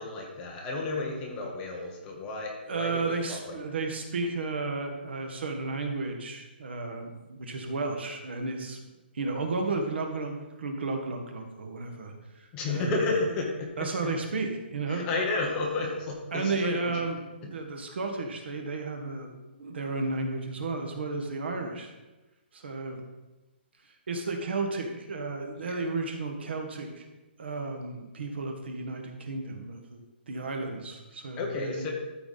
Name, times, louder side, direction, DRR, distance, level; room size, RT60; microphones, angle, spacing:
voice 1, 0.0-3.6 12.5-13.9 14.9-17.0 17.4-17.5 25.6-25.8 31.4-31.9, left 3 dB, 15° left, 0 dB, 1.0 m, -32 dB
voice 2, 2.7-8.8 9.1-12.9 13.8-15.0 16.3-19.3 19.6-21.9 22.5-23.0 24.1-27.0 27.4-30.0 30.3-31.9, right 3 dB, 65° right, 3 dB, 1.6 m, -33 dB
13.0 x 4.7 x 4.1 m, 1.1 s
hypercardioid pair, 175°, 6 cm